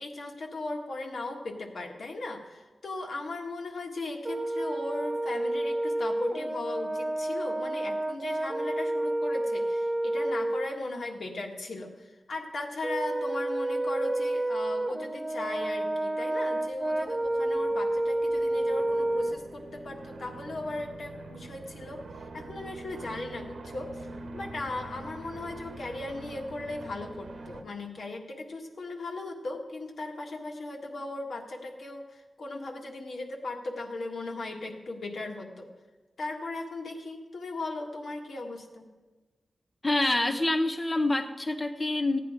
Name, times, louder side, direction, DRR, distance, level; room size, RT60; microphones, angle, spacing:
voice 1, 0.0-22.0 22.3-24.1 24.3-35.7 36.2-38.9, left 2 dB, 75° left, 1 dB, 1.7 m, -37 dB
Brass instrument, 4.2-10.7 12.8-19.4, right 1 dB, 20° right, 0.6 m, -30 dB
sound 1, 16.6-27.6, right 2 dB, 85° right, 1.0 m, -45 dB
voice 2, 39.8-42.2, left 2 dB, 20° left, 6 dB, 0.6 m, -26 dB
15.0 x 9.3 x 5.0 m, 1.3 s
wide cardioid pair, 140°, 0 cm